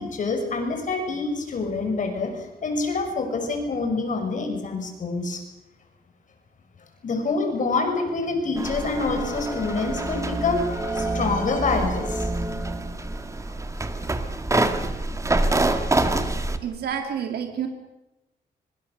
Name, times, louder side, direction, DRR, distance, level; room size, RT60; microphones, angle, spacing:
voice 1, 0.0-5.4 7.0-12.3, left 3 dB, 55° left, 5 dB, 5.9 m, -26 dB
sound 1, 8.6-16.6, right 2 dB, 20° right, 1.9 m, -26 dB
voice 2, 16.6-17.7, right 8 dB, 85° right, 5 dB, 2.4 m, -29 dB
25.0 x 25.0 x 6.7 m, 0.94 s
cardioid pair, 115°, 16 cm